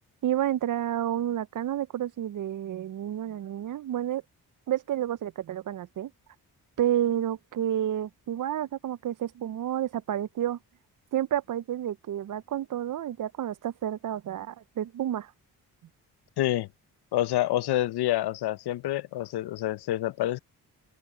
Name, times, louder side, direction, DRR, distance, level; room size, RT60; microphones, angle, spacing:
voice 1, 0.2-4.2 4.7-6.1 6.8-10.6 11.1-15.3, right 11 dB, 55° right, 0.6 m, -30 dB
voice 2, 16.4-16.7 17.1-20.4, left 14 dB, 85° left, 0.8 m, -27 dB
open air
cardioid pair, 70°, 38 cm